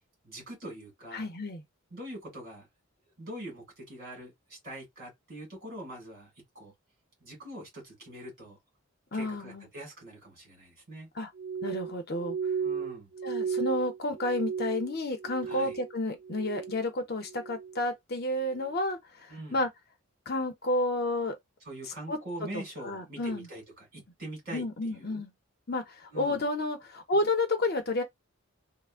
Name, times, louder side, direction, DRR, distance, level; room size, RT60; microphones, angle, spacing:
voice 1, 0.2-1.3 1.9-2.7 3.2-6.3 6.5-6.7 7.2-8.6 9.1-11.1 12.6-13.1 15.5-15.7 19.3-19.6 21.7-24.6 24.9-25.2 26.1-26.4, right 1 dB, 45° right, 2.0 m, -43 dB
voice 2, 1.1-1.6 9.1-9.7 11.2-11.3 11.6-12.4 13.2-19.7 20.3-21.4 22.1-22.2 22.5-23.5 24.5-25.3 25.7-28.0, left 2 dB, 45° left, 0.7 m, -31 dB
Glass, 11.4-15.9 16.2-16.9 17.3-17.8 18.4-18.7, right 6 dB, 60° right, 0.5 m, -35 dB
3.5 x 2.1 x 2.4 m
head